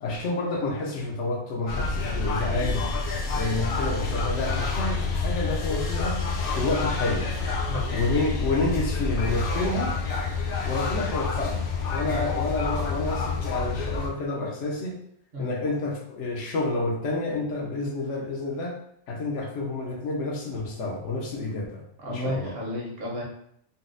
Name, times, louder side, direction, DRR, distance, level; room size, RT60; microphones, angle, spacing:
voice 1, 0.0-2.9 3.3-6.2 6.5-7.3 7.9-10.0 10.6-11.6 11.9-15.0 15.4-18.8 19.1-22.5, left 2 dB, 80° left, 0 dB, 1.0 m, -29 dB
sound 1, 1.7-14.1, left 4 dB, 60° left, 0.7 m, -28 dB
voice 2, 7.7-8.0 12.1-12.2 15.3-15.5 22.0-23.2, left 1 dB, 60° right, -2 dB, 1.0 m, -32 dB
4.0 x 2.0 x 2.5 m, 0.68 s
omnidirectional pair, 1.2 m